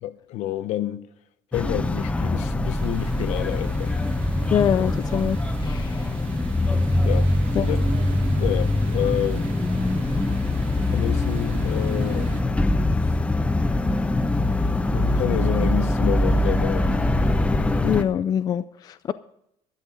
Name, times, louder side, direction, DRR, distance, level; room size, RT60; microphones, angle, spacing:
voice 1, 0.0-1.1 1.5-3.9 7.0-7.3 7.6-7.8 8.4-9.5 10.9-12.3 14.9-17.0, left 13 dB, 65° left, 0.9 m, -28 dB
sound 1, 1.5-18.0, left 2 dB, 10° left, 0.8 m, -23 dB
sound 2, 2.7-12.4, right 6 dB, 70° right, 2.7 m, -42 dB
voice 2, 4.5-6.1 7.6-7.7 17.8-19.1, left 9 dB, 35° left, 0.4 m, -24 dB
12.5 x 12.0 x 5.2 m
cardioid pair, 150°, 12 cm